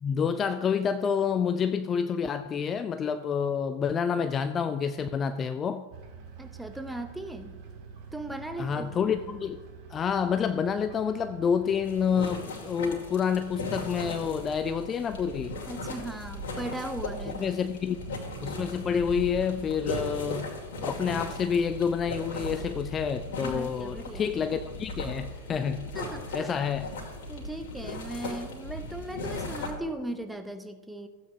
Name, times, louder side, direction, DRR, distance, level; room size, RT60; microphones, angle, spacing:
voice 1, 0.0-5.9 8.6-9.6 9.9-15.6 17.4-18.0 18.4-20.5 20.8-25.9 26.3-27.0, left 7 dB, 25° left, 11 dB, 0.4 m, -28 dB
sound 1, 5.9-12.2, right 6 dB, 45° right, 1.8 m, -47 dB
voice 2, 6.4-7.6 8.1-9.0 15.7-17.6 23.4-24.3 25.9-26.5 27.3-31.1, right 1 dB, 5° right, 7 dB, 0.8 m, -38 dB
sound 2, 11.8-29.7, left 2 dB, 55° left, 2.5 m, -37 dB
15.5 x 8.5 x 2.7 m, 1.3 s
figure-of-eight pair, 90°, 0 cm